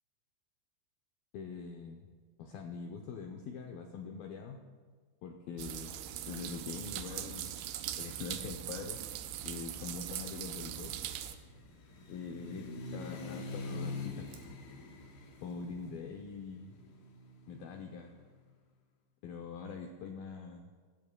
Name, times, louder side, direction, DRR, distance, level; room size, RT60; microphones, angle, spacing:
voice 1, 1.3-2.1 2.4-4.6 5.2-6.0 6.3-7.5 8.0-9.0 9.4-10.9 12.1-14.3 15.4-16.7 17.5-18.1 19.2-20.7, left 5 dB, 90° left, 3 dB, 2.0 m, -43 dB
sound 1, 5.6-11.4, right 11 dB, 90° right, 2.3 m, -41 dB
Water tap faucet / Sink (filling or washing) / Drip, 6.0-15.8, right 5 dB, 70° right, 2.1 m, -60 dB
sound 2, 10.3-18.2, left 3 dB, 70° left, 2.6 m, -45 dB
16.5 x 16.0 x 2.2 m, 1.5 s
omnidirectional pair, 5.2 m